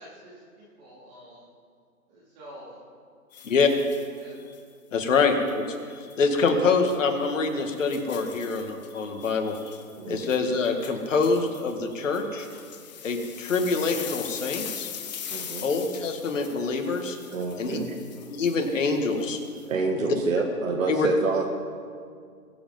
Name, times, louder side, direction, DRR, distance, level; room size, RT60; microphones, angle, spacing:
voice 1, 0.0-1.4 2.1-2.8 4.1-4.4, equal, 30° right, -8 dB, 3.9 m, -47 dB
sound 1, 3.3-4.6 5.3-6.2 6.7-7.0 7.4-19.7, left 8 dB, 30° left, 1.0 m, -42 dB
voice 2, 4.9-5.6 6.2-9.6 10.1-12.5 13.0-14.9 15.6-17.2 17.6-17.8 18.3-19.4 20.0-20.2 20.9-21.1, left 4 dB, 55° left, 4 dB, 2.0 m, -25 dB
voice 3, 15.3-15.7 17.3-18.0 19.7-21.4, right 4 dB, 60° right, 3 dB, 1.6 m, -28 dB
22.5 x 7.8 x 5.4 m, 2.1 s
hypercardioid pair, 150°, 45 cm